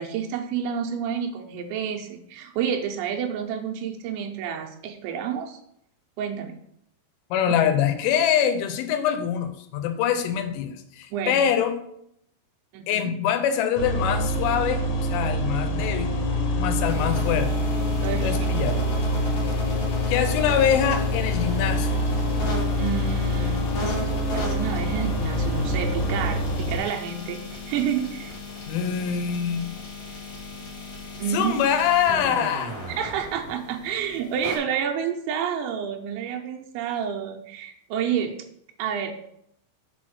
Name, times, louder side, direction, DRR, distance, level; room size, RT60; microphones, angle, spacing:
voice 1, 0.0-5.6 6.2-6.6 11.1-11.4 12.7-13.1 18.0-18.4 22.8-23.7 24.3-28.4 31.2-31.6 33.0-38.3 38.8-39.1, right 8 dB, 80° right, 3 dB, 2.9 m, -29 dB
voice 2, 7.3-11.8 12.9-16.2 16.6-17.5 18.2-18.8 20.1-22.0 28.7-29.6 31.3-32.7, left 8 dB, 90° left, 9 dB, 3.3 m, -24 dB
sound 1, 13.8-26.8, left 1 dB, 70° left, 3.6 m, -25 dB
sound 2, 16.8-34.6, equal, 45° left, 2.6 m, -36 dB
6.9 x 4.2 x 6.3 m, 0.73 s
omnidirectional pair, 5.5 m